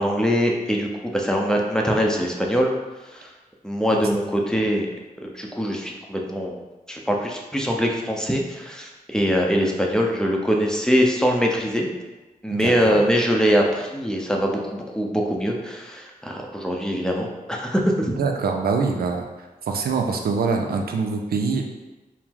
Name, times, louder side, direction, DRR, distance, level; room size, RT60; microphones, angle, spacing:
voice 1, 0.0-2.7 3.1-3.3 3.6-4.9 5.2-6.6 6.9-11.9 12.4-18.2, equal, 5° left, 0 dB, 0.6 m, -23 dB
voice 2, 12.5-13.0 18.2-19.3 19.7-21.6, right 4 dB, 85° right, 3 dB, 0.4 m, -24 dB
4.5 x 2.0 x 3.6 m, 1.1 s
cardioid pair, 60°, 15 cm